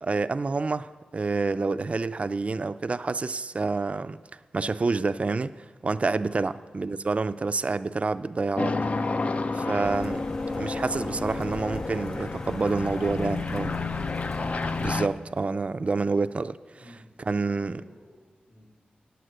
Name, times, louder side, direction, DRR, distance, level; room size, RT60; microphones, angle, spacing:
voice 1, 0.0-4.2 4.5-5.5 5.8-8.7 9.5-10.3 10.6-13.7 14.8-16.6 17.3-17.8, right 3 dB, 40° right, 12 dB, 0.4 m, -28 dB
voice 2, 6.3-6.6 16.7-18.7, left 1 dB, 80° left, -6 dB, 3.3 m, -52 dB
sound 1, 8.6-15.1, left 3 dB, 45° left, 0.4 m, -30 dB
sound 2, 9.8-15.0, left 1 dB, 15° left, 0.8 m, -41 dB
9.0 x 8.0 x 7.6 m, 1.4 s
wide cardioid pair, 70°, 3 cm